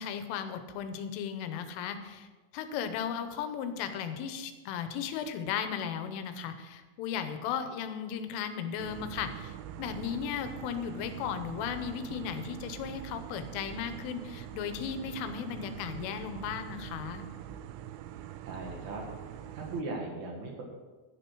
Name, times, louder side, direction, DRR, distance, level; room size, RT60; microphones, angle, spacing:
voice 1, 0.0-2.3 2.5-17.3, left 8 dB, 80° left, 9 dB, 3.4 m, -36 dB
sound 1, 8.8-19.8, right 11 dB, 85° right, 3.2 m, -44 dB
voice 2, 18.4-19.0 19.5-20.6, right 3 dB, 65° right, 0 dB, 1.8 m, -38 dB
11.5 x 11.5 x 4.6 m, 1.3 s
omnidirectional pair, 5.8 m